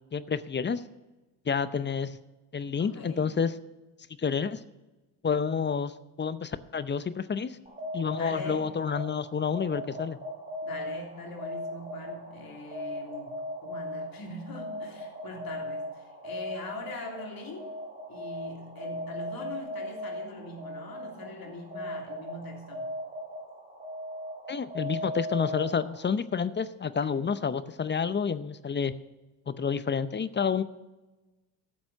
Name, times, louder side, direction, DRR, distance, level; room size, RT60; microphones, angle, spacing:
voice 1, 0.1-0.8 1.5-2.2 2.5-3.5 4.2-4.6 5.2-5.9 6.2-7.6 7.9-10.2 24.5-28.9 29.5-30.6, left 6 dB, 25° left, 0.6 m, -29 dB
voice 2, 2.8-3.3 8.2-8.7 10.6-17.8 18.1-22.9, left 2 dB, 45° left, 3.3 m, -42 dB
sound 1, 7.7-26.1, equal, 15° right, 3.2 m, -38 dB
12.0 x 7.2 x 6.5 m
supercardioid pair, 70°, 48 cm